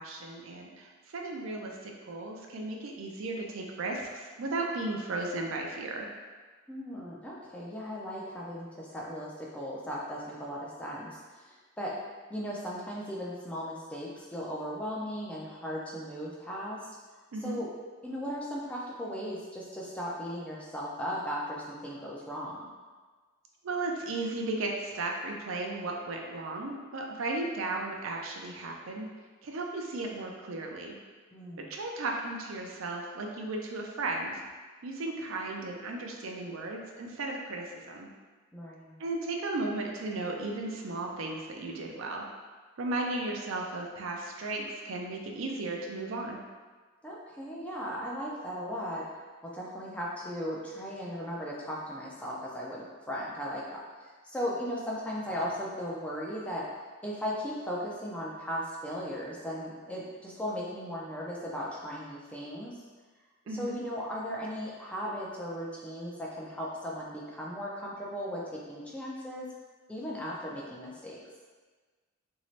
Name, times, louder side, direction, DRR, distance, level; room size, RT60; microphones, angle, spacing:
voice 1, 0.0-6.1 17.3-17.6 23.6-29.1 29.4-31.0 31.6-34.4 34.8-38.1 39.0-42.3 42.8-46.4 63.5-63.8, right 2 dB, 70° right, 1 dB, 0.5 m, -35 dB
voice 2, 6.7-11.9 12.3-16.8 17.4-17.7 18.0-22.7 31.3-31.7 38.5-38.9 47.0-49.0 49.4-56.6 57.0-62.8 63.5-69.5 69.9-71.2, equal, 5° left, -5 dB, 0.4 m, -37 dB
3.0 x 2.7 x 3.1 m, 1.4 s
head